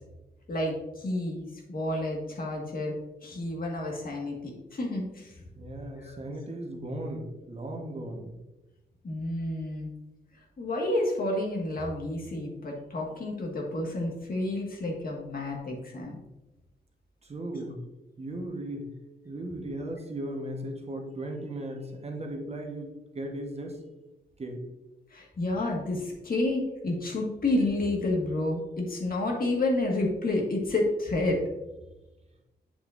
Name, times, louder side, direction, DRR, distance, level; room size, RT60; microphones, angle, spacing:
voice 1, 0.5-2.9 3.2-5.3 5.9-6.1 9.0-9.9 10.6-16.2 25.1-31.4, left 2 dB, 55° left, -1 dB, 1.7 m, -30 dB
voice 2, 5.6-8.4 17.2-17.8 18.2-18.9 19.2-23.8 24.4-24.6, right 1 dB, 35° right, 2 dB, 1.1 m, -37 dB
8.2 x 6.6 x 2.5 m, 1.0 s
wide cardioid pair, 120°, 18 cm